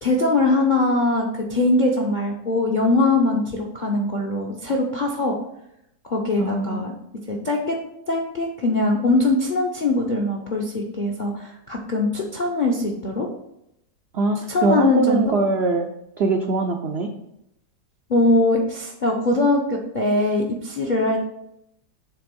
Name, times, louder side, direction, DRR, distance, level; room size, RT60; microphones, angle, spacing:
voice 1, 0.0-5.3 6.1-6.9 7.3-7.8 8.1-13.3 14.5-15.3 18.1-21.2, left 2 dB, 55° left, 0 dB, 0.5 m, -21 dB
voice 2, 6.4-6.9 14.1-15.9 16.2-17.1, right 3 dB, 80° right, 3 dB, 0.5 m, -22 dB
7.2 x 3.4 x 5.2 m, 0.79 s
omnidirectional pair, 1.9 m